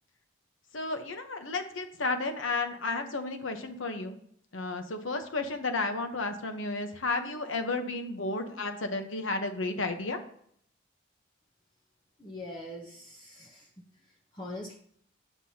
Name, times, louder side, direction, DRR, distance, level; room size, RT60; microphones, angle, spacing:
voice 1, 0.7-4.2 4.5-10.2, left 3 dB, 80° left, 7 dB, 0.9 m, -32 dB
voice 2, 12.2-13.7 14.0-14.8, left 1 dB, 20° left, -1 dB, 0.8 m, -43 dB
8.2 x 7.5 x 2.8 m, 0.65 s
head